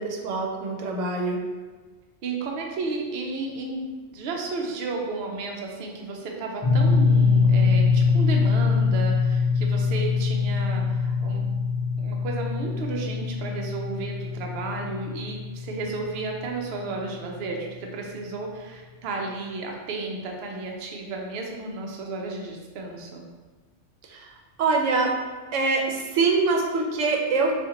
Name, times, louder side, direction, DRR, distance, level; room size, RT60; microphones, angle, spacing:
voice 1, 0.0-1.5 24.1-24.3 24.6-25.2 25.5-27.6, right 3 dB, 90° right, 1 dB, 0.9 m, -24 dB
voice 2, 2.2-3.9 4.1-11.4 12.0-23.2, right 3 dB, 65° right, 0 dB, 0.7 m, -33 dB
sound 1, 6.6-16.8, left 4 dB, 50° left, 0.4 m, -23 dB
2.8 x 2.5 x 3.7 m, 1.3 s
omnidirectional pair, 1.2 m